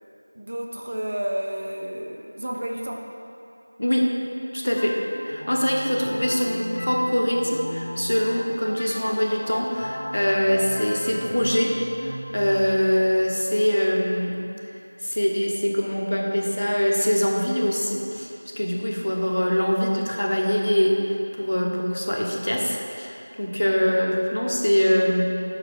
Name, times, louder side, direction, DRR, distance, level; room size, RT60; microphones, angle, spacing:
voice 1, 0.4-3.1, right 1 dB, 35° right, 0 dB, 0.5 m, -31 dB
voice 2, 3.8-4.2 4.5-14.4 15.0-18.3 18.6-25.3, equal, 55° left, 0 dB, 0.9 m, -23 dB
sound 1, 4.8-14.3, equal, 20° left, 0.7 m, -36 dB
7.7 x 3.9 x 4.7 m, 2.7 s
figure-of-eight pair, 175°, 0 cm